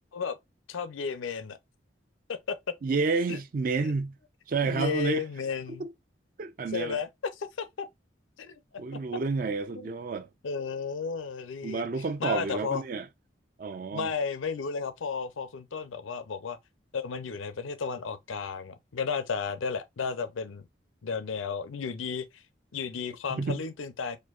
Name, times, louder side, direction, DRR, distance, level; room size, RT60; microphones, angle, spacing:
voice 1, 0.7-1.6 2.3-2.7 3.3-3.4 3.8-3.9 4.6-5.9 6.7-7.9 8.4-8.6 8.9-9.0 9.7-9.9 10.4-11.9 12.2-12.8 13.9-16.6 16.9-20.7 21.0-22.4 22.7-24.2, left 5 dB, 90° left, 0.5 m, -33 dB
voice 2, 2.8-4.1 4.5-5.2 5.7-5.9 6.4-7.0 8.8-10.3 11.6-13.1 13.6-14.1 23.3-23.6, right 4 dB, 45° right, 0.4 m, -30 dB
4.4 x 2.5 x 2.3 m
head